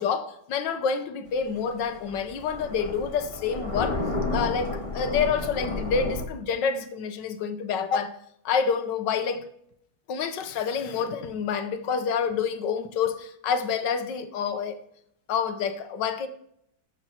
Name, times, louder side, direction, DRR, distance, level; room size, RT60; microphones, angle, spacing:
voice 1, 0.0-4.0 4.3-8.2 8.4-9.5 10.1-14.8 15.3-16.3, left 6 dB, 70° left, 1.4 m, -28 dB
Thunder, 1.3-6.2, left 2 dB, 20° left, 1.2 m, -31 dB
18.5 x 6.9 x 2.8 m
omnidirectional pair, 2.1 m